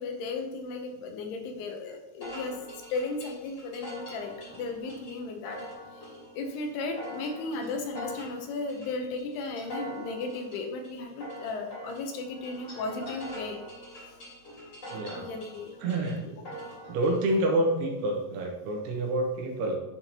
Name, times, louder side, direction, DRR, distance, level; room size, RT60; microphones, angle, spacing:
voice 1, 0.0-2.6 2.9-5.6 5.9-6.1 6.3-13.6 15.1-15.8 16.2-16.4, left 3 dB, 80° left, 4 dB, 2.8 m, -35 dB
sound 1, 2.2-17.2, equal, 30° left, 2.7 m, -44 dB
voice 2, 14.9-15.2 15.8-16.2 16.9-19.8, right 1 dB, 85° right, 0 dB, 3.1 m, -28 dB
10.5 x 4.4 x 2.8 m, 1.0 s
omnidirectional pair, 4.7 m